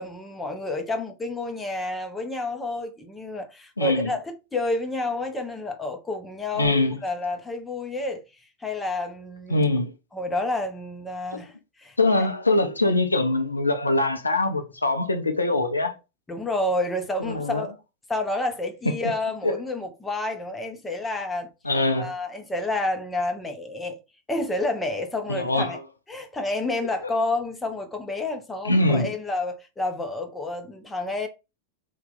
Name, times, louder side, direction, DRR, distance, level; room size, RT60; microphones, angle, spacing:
voice 1, 0.0-8.2 8.6-9.7 10.1-11.5 11.8-12.3 16.3-17.7 18.1-21.5 22.0-24.0 24.3-25.8 26.1-31.3, left 2 dB, 10° left, 0.6 m, -29 dB
voice 2, 3.8-4.1 6.5-7.0 9.5-9.9 11.3-11.4 12.0-15.9 17.2-17.7 19.0-19.1 19.4-19.6 21.6-22.1 25.3-25.8 28.6-29.1, left 2 dB, 80° left, 0.4 m, -23 dB
2.8 x 2.2 x 3.8 m
figure-of-eight pair, 90°, 0 cm